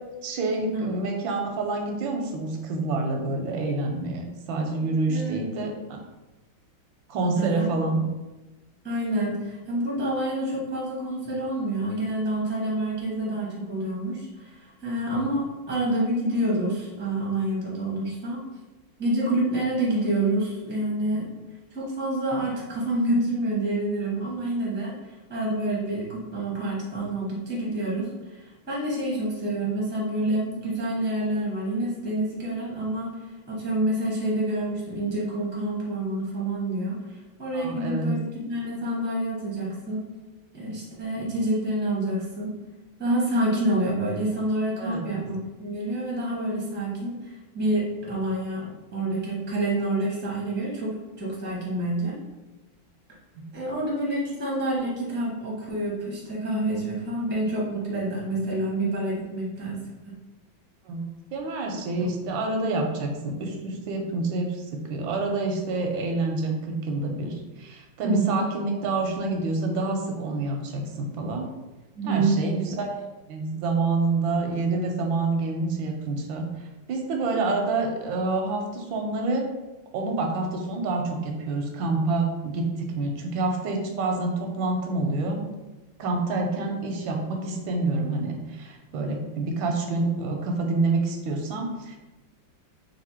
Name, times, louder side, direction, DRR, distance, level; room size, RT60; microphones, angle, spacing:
voice 1, 0.2-6.0 7.1-8.0 37.5-38.1 44.8-45.2 60.9-64.6 64.9-71.5 72.0-73.0 73.3-76.5 76.9-79.5 79.9-85.4 86.0-92.0, right 3 dB, 85° right, 2 dB, 1.4 m, -27 dB
voice 2, 5.1-5.4 7.4-7.7 8.8-18.4 19.0-21.3 21.7-24.9 25.3-28.1 28.4-33.1 33.5-40.0 40.5-42.5 43.0-52.2 53.5-60.1 68.0-68.4 71.9-72.4, right 1 dB, 10° right, -5 dB, 0.6 m, -27 dB
3.3 x 2.7 x 4.3 m, 1.1 s
omnidirectional pair, 2.1 m